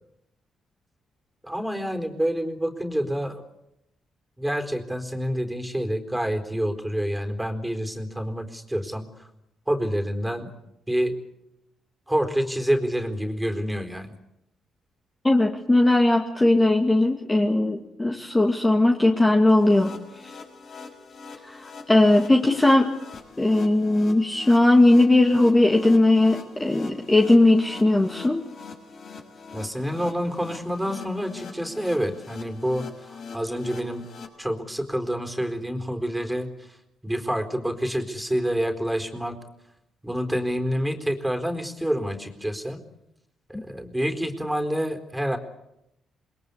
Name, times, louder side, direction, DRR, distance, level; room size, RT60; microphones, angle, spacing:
voice 1, 1.4-3.3 4.4-9.3 9.7-10.5 10.9-11.2 12.1-14.1 29.5-34.0 34.4-36.8 37.0-39.4 40.0-42.8 43.5-45.4, equal, 5° right, 6 dB, 4.1 m, -27 dB
voice 2, 15.2-19.9 21.5-22.9 23.4-28.4, left 2 dB, 15° left, 1 dB, 2.3 m, -19 dB
sound 1, 19.5-34.3, left 4 dB, 60° left, 6.6 m, -42 dB
28.0 x 21.5 x 8.3 m, 0.85 s
cardioid pair, 90°, 0 cm